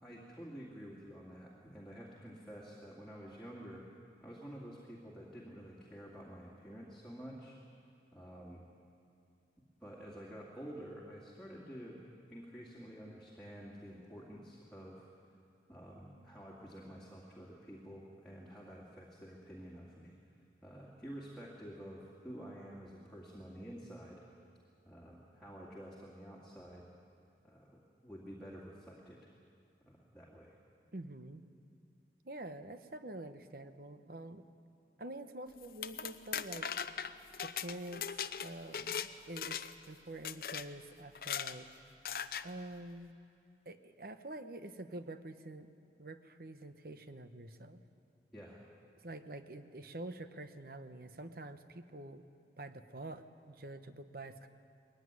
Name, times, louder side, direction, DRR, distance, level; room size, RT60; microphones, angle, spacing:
voice 1, 0.0-3.8 4.2-7.6 8.1-8.6 9.8-12.0 12.3-15.1 15.7-20.2 20.6-24.2 24.8-26.9 27.4-29.2 29.9-30.6 48.3-48.6, equal, 5° left, -6 dB, 2.4 m, -50 dB
voice 2, 30.9-31.5 32.2-34.4 35.0-36.7 37.4-38.0 38.4-41.7 42.4-43.1 43.6-45.7 46.0-47.8 49.0-52.2 52.6-54.5, right 1 dB, 55° right, 9 dB, 1.0 m, -47 dB
sound 1, 35.6-39.1 39.4-39.8 40.2-40.7 41.1-41.6 42.0-42.5, left 8 dB, 55° left, 0.6 m, -39 dB
21.0 x 16.0 x 9.7 m, 2.5 s
head